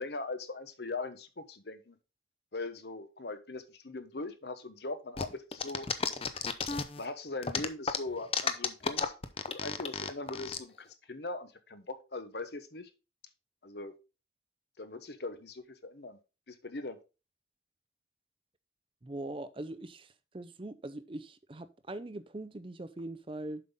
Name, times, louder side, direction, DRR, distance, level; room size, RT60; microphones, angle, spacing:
voice 1, 0.0-2.0 2.5-5.9 7.0-9.0 9.5-12.9 13.6-13.9 14.8-16.2 16.5-17.0, left 3 dB, 65° left, 1.0 m, -40 dB
sound 1, 5.2-7.0 7.4-10.6, left 5 dB, 30° left, 0.6 m, -32 dB
voice 2, 19.0-23.6, right 2 dB, 30° right, 0.5 m, -42 dB
7.5 x 5.7 x 3.7 m
head